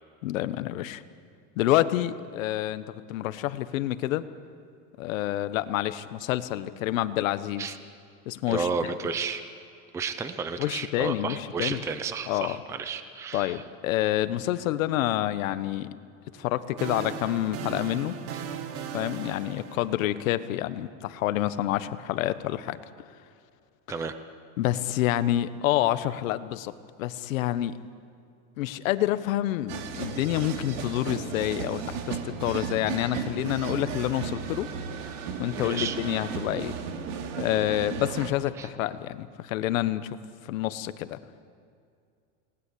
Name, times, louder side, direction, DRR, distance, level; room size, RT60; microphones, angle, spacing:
voice 1, 0.2-1.0 1.6-4.2 5.0-7.7 8.2-8.7 10.6-11.8 12.3-12.6 13.3-15.9 16.3-18.1 18.9-22.8 24.6-26.7 27.0-27.8 28.6-34.7 35.4-36.8 37.4-40.2 40.4-41.2, left 14 dB, 90° left, 13 dB, 1.3 m, -28 dB
voice 2, 8.5-9.4 9.9-13.6 18.3-18.4 23.9-24.1 35.5-36.0 38.6-38.7, right 5 dB, 5° right, 10 dB, 0.6 m, -32 dB
sound 1, 16.3-20.6, right 7 dB, 35° right, 1.7 m, -37 dB
sound 2, 29.7-38.3, right 6 dB, 70° right, 2.9 m, -35 dB
29.5 x 19.5 x 8.6 m, 2.4 s
supercardioid pair, 165°, 39 cm